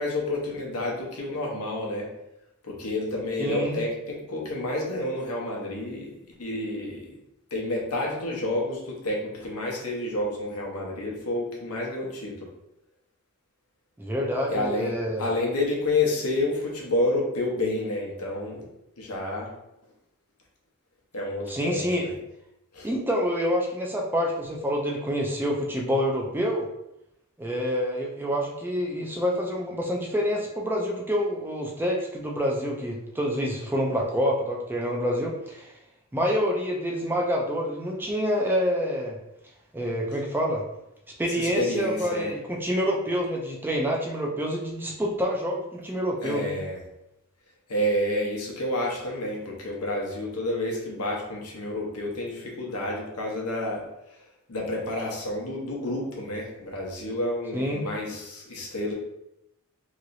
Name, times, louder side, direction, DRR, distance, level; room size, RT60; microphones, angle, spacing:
voice 1, 0.0-2.1 2.6-6.1 6.4-7.1 7.5-12.5 14.5-18.7 19.0-19.5 21.1-22.1 22.7-22.9 41.4-42.3 46.2-46.8 47.7-53.8 54.5-58.9, left 1 dB, 85° left, -2 dB, 0.9 m, -29 dB
voice 2, 3.4-3.8 14.0-15.3 21.5-22.1 22.8-26.7 27.4-35.7 36.1-39.2 39.7-40.6 41.2-46.6 57.5-57.8, equal, 10° right, -1 dB, 0.4 m, -27 dB
3.1 x 2.9 x 2.6 m, 0.86 s
head